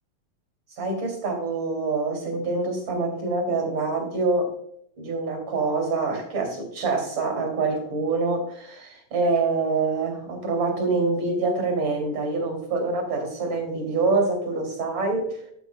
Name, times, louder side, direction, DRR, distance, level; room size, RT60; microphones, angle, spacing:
voice 1, 0.8-4.5 5.0-15.4, right 3 dB, 40° right, 3.6 m, -25 dB
14.0 x 7.3 x 2.4 m
omnidirectional pair, 3.6 m